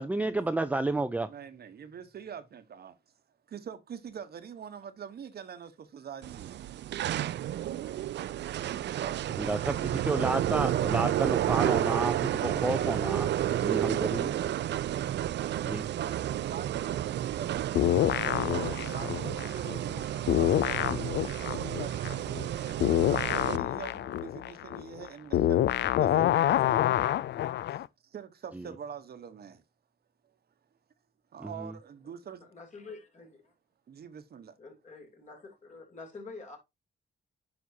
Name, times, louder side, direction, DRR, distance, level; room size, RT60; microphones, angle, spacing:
voice 1, 0.0-1.3 9.4-13.3 13.6-14.3 15.6-15.8 28.5-28.7 31.4-31.7, right 2 dB, 10° right, 0.4 m, -31 dB
voice 2, 1.3-2.9 3.5-6.5 8.6-9.1 10.6-11.0 11.2-12.0 12.4-15.1 15.8-18.2 18.7-22.3 23.1-26.9 28.1-29.6 31.3-32.5 33.9-34.5, right 7 dB, 60° right, 1.0 m, -44 dB
sound 1, 6.2-23.6, right 12 dB, 75° right, 0.4 m, -31 dB
sound 2, 17.7-20.0 20.3-27.9, left 12 dB, 80° left, 0.4 m, -27 dB
voice 3, 32.4-33.5 34.6-36.6, left 3 dB, 40° left, 3.2 m, -47 dB
9.5 x 5.7 x 2.7 m
cardioid pair, 110°, 18 cm